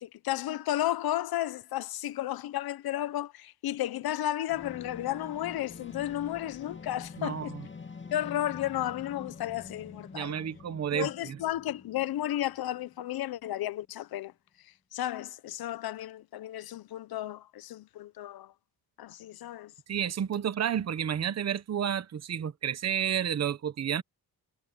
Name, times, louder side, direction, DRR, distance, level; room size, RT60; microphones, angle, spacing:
voice 1, 0.0-7.5 8.1-10.3 10.9-14.3 14.9-18.5 19.0-19.7, left 13 dB, 70° left, 0.8 m, -33 dB
sound 1, 4.5-13.1, left 5 dB, 30° left, 2.6 m, -46 dB
voice 2, 7.2-7.7 10.1-11.4 19.9-24.0, right 9 dB, 40° right, 1.2 m, -31 dB
wide cardioid pair, 165°, 38 cm